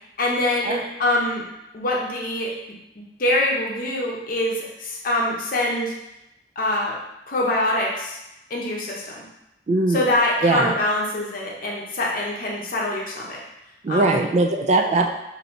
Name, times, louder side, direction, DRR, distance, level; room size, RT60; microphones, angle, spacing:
voice 1, 0.2-1.4 1.7-2.6 3.0-5.9 6.6-7.0 7.3-8.2 8.5-9.3 9.9-13.4 13.9-14.2, left 1 dB, 55° left, -2 dB, 0.7 m, -24 dB
voice 2, 9.7-10.1 10.4-10.7 13.8-15.1, right 2 dB, 40° right, 4 dB, 0.3 m, -20 dB
2.7 x 2.7 x 4.3 m, 0.88 s
head